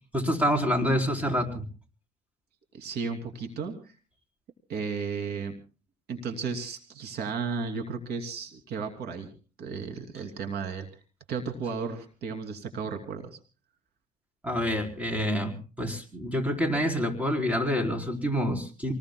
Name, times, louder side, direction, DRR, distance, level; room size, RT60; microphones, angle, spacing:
voice 1, 0.1-1.7 14.4-18.9, equal, 10° right, 3 dB, 4.2 m, -27 dB
voice 2, 2.7-3.9 4.7-5.5 6.1-9.3 9.6-10.9 11.3-13.3, right 5 dB, 70° right, 5 dB, 3.0 m, -34 dB
28.0 x 20.0 x 2.3 m, 0.36 s
cardioid pair, 110°, 17 cm